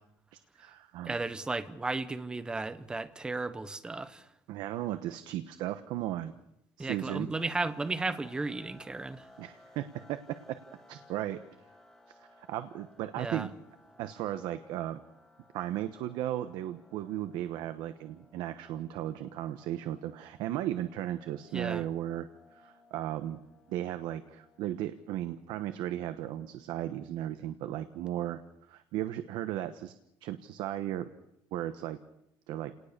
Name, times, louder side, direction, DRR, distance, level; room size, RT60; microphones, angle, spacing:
voice 1, 0.3-1.1 4.5-6.3 6.8-7.3 9.4-10.6 10.9-11.4 12.1-13.5 14.0-15.0 15.5-23.4 23.7-28.4 28.7-29.9 30.2-31.1 31.5-32.0 32.5-32.7, right 12 dB, 70° right, 10 dB, 1.1 m, -36 dB
voice 2, 1.0-4.3 6.8-9.3 13.2-13.5 21.5-21.9, right 3 dB, 10° right, 12 dB, 1.0 m, -34 dB
sound 1, 7.3-25.2, left 1 dB, 5° left, 3.0 m, -60 dB
29.5 x 19.0 x 6.7 m, 0.81 s
cardioid pair, 180°, 8 cm